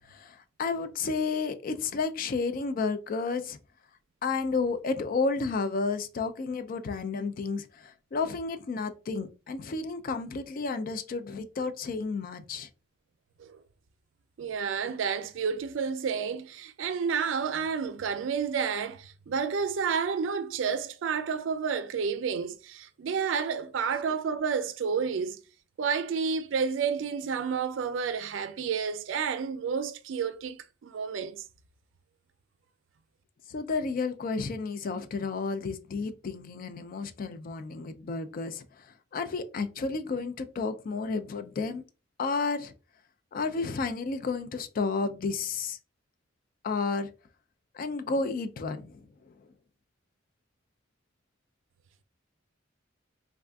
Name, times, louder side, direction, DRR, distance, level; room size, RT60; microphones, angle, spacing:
voice 1, 0.1-3.6 4.2-12.7 33.5-38.9 39.1-41.8 42.2-42.7 43.3-45.8 46.6-47.1 47.7-49.1, left 4 dB, 45° left, 0.3 m, -31 dB
voice 2, 14.4-25.4 25.8-31.4, right 6 dB, 70° right, 0.4 m, -30 dB
3.5 x 2.4 x 2.2 m
head